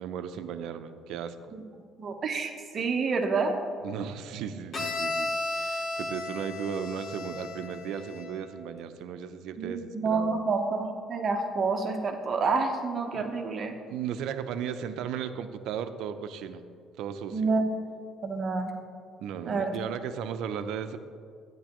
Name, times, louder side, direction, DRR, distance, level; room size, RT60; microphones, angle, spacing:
voice 1, 0.0-1.4 3.8-10.3 13.1-13.3 13.9-16.6 17.0-17.5 19.2-21.0, right 8 dB, 75° right, 10 dB, 0.5 m, -36 dB
voice 2, 2.0-3.5 9.6-13.8 17.3-17.7 18.2-18.7 19.4-19.7, right 4 dB, 35° right, 3 dB, 1.0 m, -28 dB
Bowed string instrument, 4.7-8.5, left 2 dB, 30° left, 1.0 m, -34 dB
12.0 x 9.4 x 3.0 m, 2.2 s
cardioid pair, 135°, 0 cm